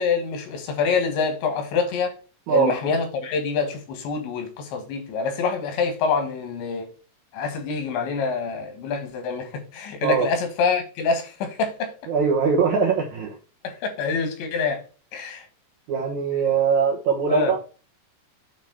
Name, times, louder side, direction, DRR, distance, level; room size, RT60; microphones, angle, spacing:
voice 1, 0.0-2.2 2.5-6.9 7.3-11.9 13.6-14.8 15.1-15.5 17.3-17.5, left 5 dB, 80° left, 3.9 m, -26 dB
voice 2, 12.1-13.3 15.9-17.6, right 5 dB, 70° right, 1.9 m, -21 dB
8.9 x 3.6 x 5.8 m
omnidirectional pair, 5.1 m